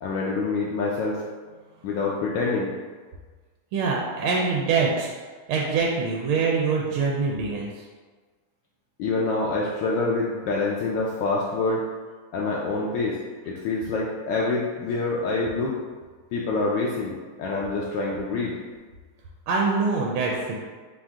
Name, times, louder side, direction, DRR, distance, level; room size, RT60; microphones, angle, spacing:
voice 1, 0.0-1.2 1.8-2.7 9.0-11.9 12.3-13.2 13.5-15.8 16.3-18.6, left 3 dB, 75° left, -4 dB, 1.1 m, -26 dB
voice 2, 3.7-5.1 5.5-7.8 19.5-20.6, right 4 dB, 85° right, -2 dB, 1.5 m, -24 dB
4.6 x 2.5 x 3.5 m, 1.4 s
omnidirectional pair, 2.3 m